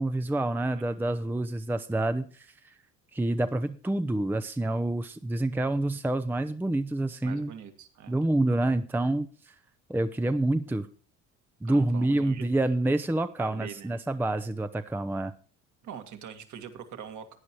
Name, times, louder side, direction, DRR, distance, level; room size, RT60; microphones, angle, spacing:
voice 1, 0.0-2.5 3.1-7.5 8.1-9.5 9.9-10.9 11.6-15.3, right 2 dB, 5° right, 10 dB, 0.6 m, -27 dB
voice 2, 7.2-8.2 11.6-12.4 13.4-13.9 15.8-17.4, right 8 dB, 55° right, 7 dB, 1.9 m, -43 dB
17.0 x 9.5 x 3.0 m, 0.40 s
hypercardioid pair, 65°, 36 cm